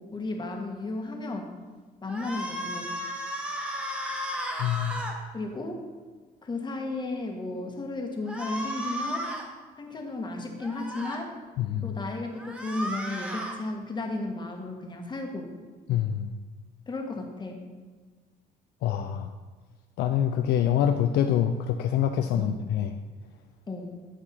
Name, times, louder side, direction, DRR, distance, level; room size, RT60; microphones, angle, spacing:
voice 1, 0.1-1.6 2.0-2.9 5.3-5.8 6.4-9.3 9.8-11.3 11.8-15.5 16.9-17.6 22.3-22.5 23.7-23.9, left 2 dB, 25° left, 2 dB, 1.5 m, -34 dB
sound 1, 2.1-5.2 8.3-9.5 10.6-11.2 12.4-13.6, equal, 5° right, 1.3 m, -34 dB
voice 2, 4.6-5.1 11.6-11.9 15.9-16.3 18.8-19.3 20.0-22.9, left 10 dB, 80° left, 6 dB, 0.5 m, -25 dB
12.5 x 4.8 x 4.3 m, 1.4 s
cardioid pair, 110°, 17 cm